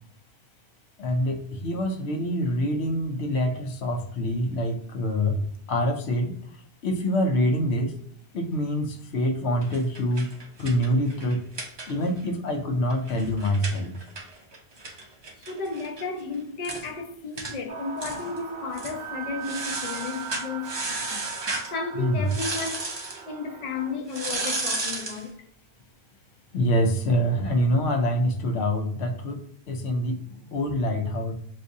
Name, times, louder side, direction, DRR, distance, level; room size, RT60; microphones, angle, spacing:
voice 1, 1.0-8.0 8.3-10.3 10.6-11.5 11.9-14.0 22.0-22.3 26.5-31.3, equal, 85° left, 0.9 m, -26 dB
sound 1, 9.6-12.3 12.6-12.7 12.9-16.0 16.3-16.4 16.6-16.9 17.4-17.6 18.0-18.4 18.7-19.0 19.4-21.7 22.3-23.2 24.1-25.2, right 2 dB, 35° right, 0.4 m, -33 dB
voice 2, 15.4-21.3 21.7-22.9 23.3-25.3, left 4 dB, 50° left, 0.6 m, -33 dB
sound 2, 17.7-24.0, right 7 dB, 65° right, 0.7 m, -39 dB
2.6 x 2.6 x 3.5 m
omnidirectional pair, 1.1 m